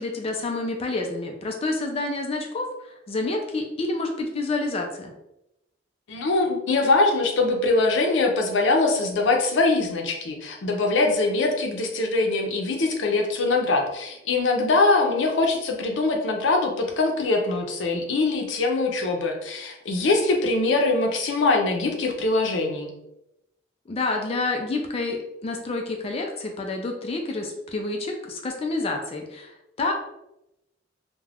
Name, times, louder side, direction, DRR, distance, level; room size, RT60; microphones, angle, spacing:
voice 1, 0.0-5.1 23.9-29.9, left 2 dB, 35° left, 2 dB, 0.3 m, -28 dB
voice 2, 6.1-22.9, left 3 dB, 90° left, 2 dB, 0.5 m, -23 dB
2.4 x 2.1 x 3.3 m, 0.86 s
head